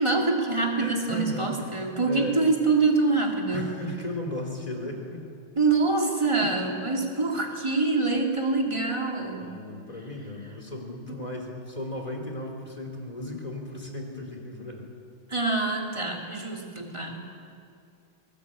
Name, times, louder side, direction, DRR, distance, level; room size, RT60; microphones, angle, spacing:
voice 1, 0.0-3.7 5.6-9.5 11.1-11.2 15.3-17.2, right 3 dB, 15° right, 0 dB, 2.7 m, -25 dB
voice 2, 0.8-2.4 3.5-5.2 6.4-6.5 9.3-14.9, left 1 dB, 20° left, 2 dB, 3.1 m, -36 dB
21.5 x 19.0 x 8.6 m, 2.3 s
omnidirectional pair, 2.3 m